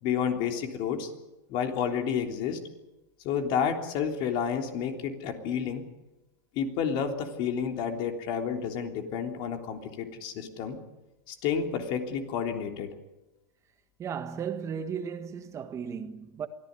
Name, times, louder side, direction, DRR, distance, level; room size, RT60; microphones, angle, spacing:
voice 1, 0.0-1.1 1.5-2.6 3.2-5.8 6.5-10.8 11.3-12.9, left 7 dB, 50° left, 3.4 m, -30 dB
voice 2, 14.0-16.5, right 7 dB, 30° right, 1.5 m, -35 dB
23.5 x 15.0 x 9.7 m
supercardioid pair, 130°, 11 cm